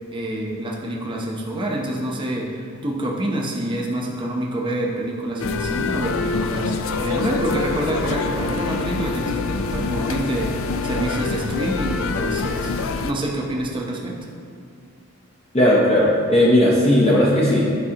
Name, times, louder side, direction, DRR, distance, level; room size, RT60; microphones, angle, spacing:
voice 1, 0.1-12.7 13.0-14.2, right 1 dB, 25° right, -2 dB, 0.7 m, -27 dB
sound 1, 5.4-13.1, left 4 dB, 70° left, 0.4 m, -25 dB
voice 2, 15.5-17.8, left 1 dB, 30° left, -5 dB, 0.6 m, -16 dB
9.6 x 5.4 x 2.9 m, 2.3 s
head